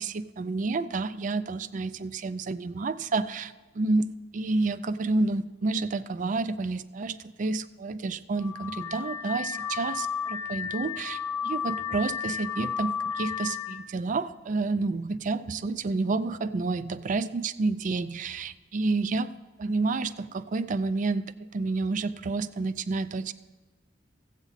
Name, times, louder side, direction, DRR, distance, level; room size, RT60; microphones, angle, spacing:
voice 1, 0.0-23.3, right 3 dB, 45° right, 15 dB, 0.4 m, -30 dB
Car / Alarm, 8.4-13.9, left 7 dB, 15° left, 1.0 m, -33 dB
15.0 x 8.2 x 4.0 m, 1.2 s
head